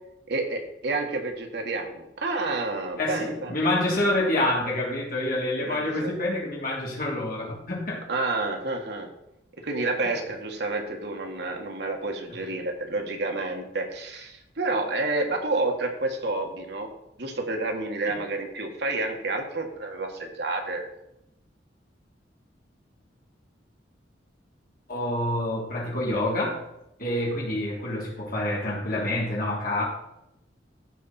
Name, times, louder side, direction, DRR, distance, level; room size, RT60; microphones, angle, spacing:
voice 1, 0.3-3.5 5.6-6.1 8.1-9.1 9.6-16.9 17.2-20.8, right 2 dB, 65° right, 3 dB, 1.6 m, -29 dB
voice 2, 3.0-8.0 18.0-18.2 24.9-26.6 27.0-29.8, left 1 dB, 50° left, -3 dB, 3.4 m, -27 dB
15.0 x 5.2 x 4.3 m, 0.85 s
head